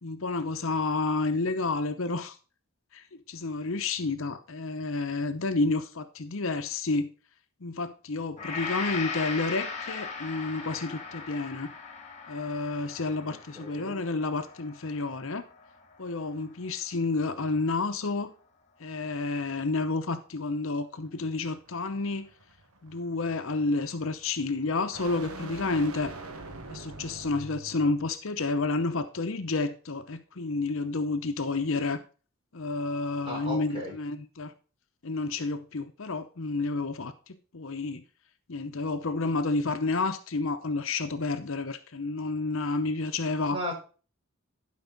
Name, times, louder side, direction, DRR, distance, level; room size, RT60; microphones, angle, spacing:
voice 1, 0.0-2.4 2.9-7.1 7.6-11.7 12.3-15.4 16.0-18.3 18.8-22.3 22.8-26.1 26.7-32.0 32.5-34.5 35.0-38.0 38.5-43.6, left 3 dB, 60° left, 0.8 m, -30 dB
Gong, 8.4-16.7 17.1-17.3, left 4 dB, 30° left, 1.7 m, -39 dB
voice 2, 13.3-14.0 33.2-33.9 43.5-43.7, equal, 25° right, 4.3 m, -36 dB
sound 1, 21.1-28.1, right 2 dB, 80° right, 1.4 m, -45 dB
12.0 x 5.4 x 4.0 m
head